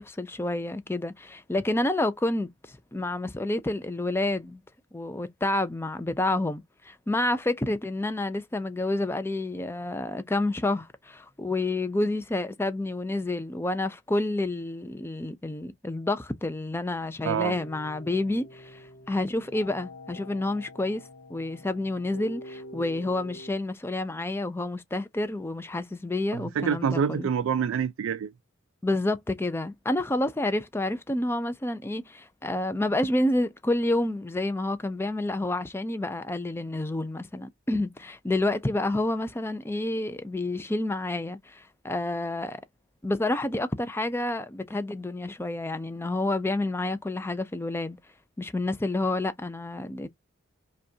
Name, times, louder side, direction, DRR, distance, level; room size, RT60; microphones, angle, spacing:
voice 1, 0.0-4.6 4.9-27.3 28.8-42.6 43.0-48.0 48.4-50.1, left 2 dB, 10° left, 0.4 m, -29 dB
voice 2, 17.2-17.6 26.3-28.3, right 7 dB, 70° right, 0.3 m, -27 dB
sound 1, 17.4-23.5, left 1 dB, 60° left, 0.6 m, -46 dB
5.1 x 2.3 x 2.7 m
head